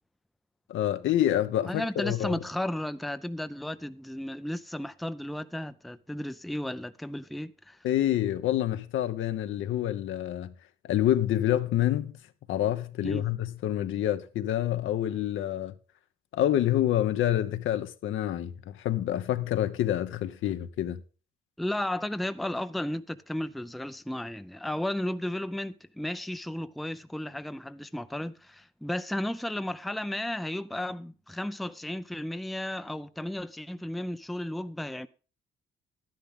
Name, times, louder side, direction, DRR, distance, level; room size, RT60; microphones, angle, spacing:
voice 1, 0.7-2.4 7.8-10.5 10.8-12.2 12.5-15.7 16.3-21.0, left 12 dB, 80° left, 1.0 m, -27 dB
voice 2, 1.7-7.8 13.0-13.3 21.6-35.1, left 1 dB, ahead, 0.5 m, -34 dB
12.0 x 10.5 x 3.7 m
cardioid pair, 90°, 20 cm